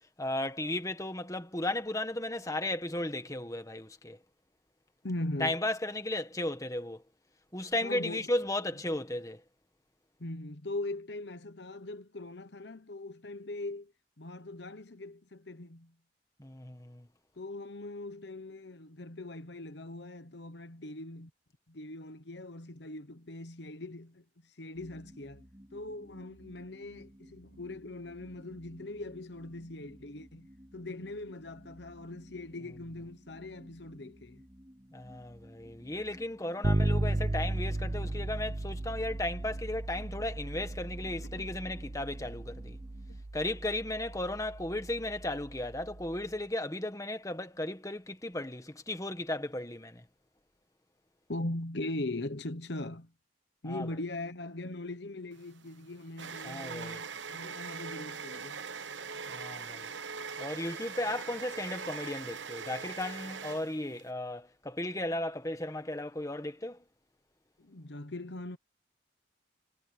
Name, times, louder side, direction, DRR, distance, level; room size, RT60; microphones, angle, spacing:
voice 1, 0.2-4.2 5.4-7.0 7.5-9.4 16.4-17.1 34.9-42.8 43.3-50.0 53.7-53.9 56.4-57.0 59.3-59.9 60.4-66.8, left 1 dB, 15° left, 1.6 m, -35 dB
voice 2, 5.0-5.6 7.8-8.3 10.2-13.9 14.2-15.9 17.4-21.3 21.7-25.4 25.7-34.4 41.2-41.5 51.3-53.1 53.6-58.6 67.6-68.6, left 2 dB, 65° left, 1.1 m, -41 dB
sound 1, 24.7-43.2, equal, 20° right, 3.4 m, -56 dB
Bass guitar, 36.6-46.3, right 2 dB, 35° right, 0.7 m, -35 dB
sound 2, 55.4-64.1, right 5 dB, 75° right, 1.2 m, -41 dB
head